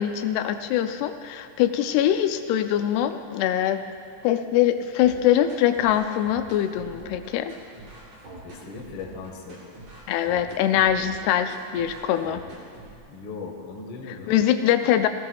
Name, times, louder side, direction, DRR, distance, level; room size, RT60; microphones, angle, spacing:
voice 1, 0.0-3.8 4.2-7.5 10.1-12.4 14.1-15.1, left 11 dB, 90° left, 8 dB, 2.7 m, -23 dB
sound 1, 5.0-13.0, right 1 dB, 55° right, 4.3 m, -44 dB
voice 2, 8.4-9.6 13.1-14.3, left 4 dB, 50° left, 0 dB, 1.7 m, -38 dB
19.5 x 16.5 x 2.3 m, 2.4 s
omnidirectional pair, 4.5 m